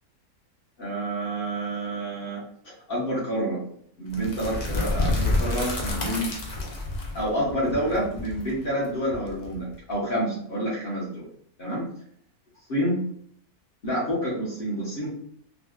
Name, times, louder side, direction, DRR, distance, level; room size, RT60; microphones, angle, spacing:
voice 1, 0.8-2.4 2.9-3.6 4.0-6.3 7.1-11.2 11.6-11.9 12.7-13.0 13.8-15.1, right 1 dB, 40° left, -6 dB, 1.4 m, -28 dB
sound 1, 4.1-9.9, left 2 dB, 60° left, 0.4 m, -29 dB
3.4 x 2.4 x 2.4 m, 0.64 s
omnidirectional pair, 1.6 m